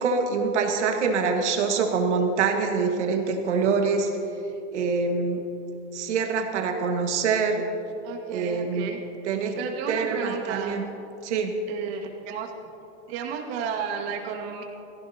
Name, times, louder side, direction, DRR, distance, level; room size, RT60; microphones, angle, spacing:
voice 1, 0.0-4.1 4.7-5.4 5.9-7.7 8.3-9.0 9.2-9.6 9.9-10.8 11.2-11.6, right 5 dB, 85° right, 3 dB, 1.8 m, -25 dB
voice 2, 8.0-9.0 9.6-10.8 11.7-12.5 13.1-14.6, right 6 dB, 60° right, 1 dB, 2.2 m, -33 dB
18.5 x 15.5 x 2.9 m, 2.8 s
supercardioid pair, 125°, 34 cm